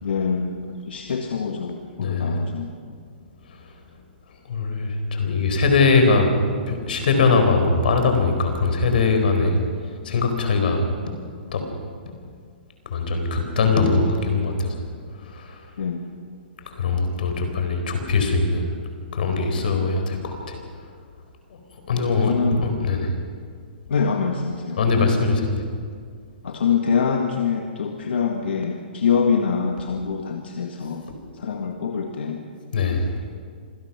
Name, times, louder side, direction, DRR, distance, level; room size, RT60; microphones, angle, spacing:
voice 1, 0.0-3.0 15.8-16.1 22.2-22.6 23.9-25.1 26.4-31.0 31.3-32.4, left 6 dB, 80° left, 3 dB, 1.8 m, -25 dB
voice 2, 2.0-2.3 4.5-6.3 6.7-9.6 10.0-11.1 11.5-11.6 12.9-14.7 15.3-15.5 16.8-18.7 19.1-20.6 21.9-22.3 22.6-23.1 24.8-25.6 32.7-33.1, left 4 dB, 55° left, 5 dB, 4.3 m, -21 dB
26.5 x 17.0 x 6.1 m, 2.1 s
hypercardioid pair, 175°, 6 cm